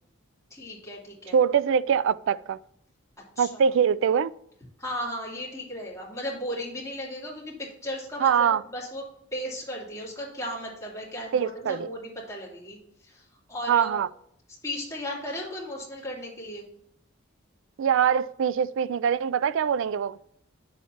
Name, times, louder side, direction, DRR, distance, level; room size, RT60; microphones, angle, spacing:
voice 1, 0.5-1.4 3.4-3.5 4.8-7.5 7.8-9.0 9.3-12.8 13.0-14.0 14.6-16.6, equal, 15° left, 2.9 m, -35 dB
voice 2, 1.3-2.6 3.4-4.3 8.2-8.6 11.3-11.9 13.7-14.1 17.8-20.2, right 7 dB, 65° right, 0.3 m, -23 dB
10.5 x 7.3 x 2.9 m
head